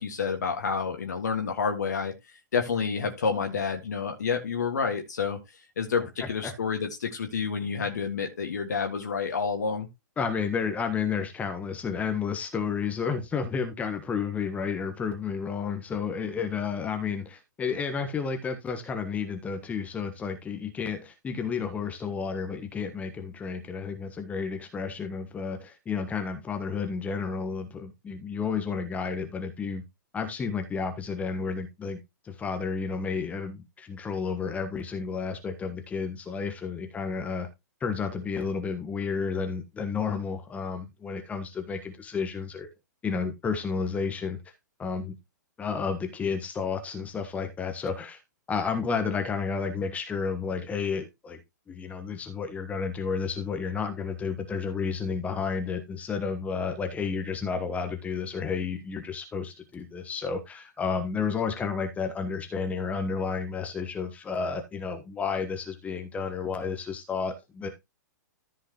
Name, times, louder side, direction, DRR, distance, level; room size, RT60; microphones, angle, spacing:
voice 1, 0.0-5.4 5.8-9.9, left 5 dB, 60° left, 4 dB, 1.8 m, -29 dB
voice 2, 10.2-29.8 30.1-37.5 37.8-42.7 43.0-44.4 44.8-45.2 45.6-48.2 48.5-51.4 51.7-67.7, left 5 dB, 15° left, 6 dB, 1.3 m, -31 dB
14.0 x 5.6 x 3.0 m, 0.22 s
figure-of-eight pair, 110°, 10 cm